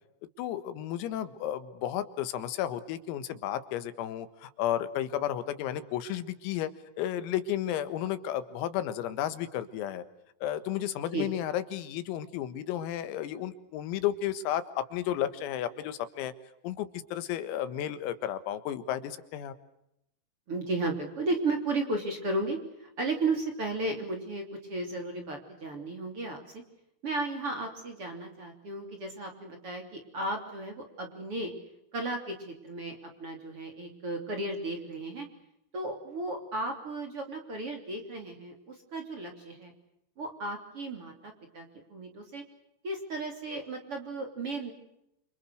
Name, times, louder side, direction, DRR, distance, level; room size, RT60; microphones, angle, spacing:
voice 1, 0.4-6.7 7.0-10.0 10.4-16.3 16.6-19.5, left 11 dB, 90° left, 12 dB, 4.3 m, -33 dB
voice 2, 20.5-26.6 27.0-31.5 31.9-35.2 35.7-39.7 40.2-42.4 42.8-44.7, right 2 dB, 30° right, 4 dB, 3.3 m, -34 dB
28.0 x 27.0 x 6.5 m, 0.81 s
omnidirectional pair, 5.9 m